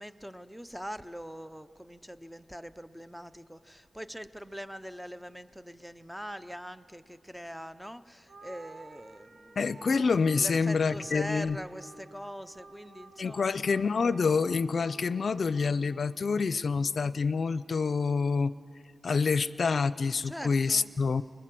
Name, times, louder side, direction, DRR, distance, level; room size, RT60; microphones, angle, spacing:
voice 1, 0.0-9.9 10.4-13.6 20.2-20.9, equal, ahead, 12 dB, 0.7 m, -43 dB
sound 1, 8.3-16.9, right 3 dB, 60° right, 1.2 m, -53 dB
voice 2, 9.6-11.6 13.2-18.5 19.0-21.2, left 5 dB, 65° left, 16 dB, 0.5 m, -27 dB
25.5 x 21.0 x 7.7 m, 2.2 s
wide cardioid pair, 110°, 0 cm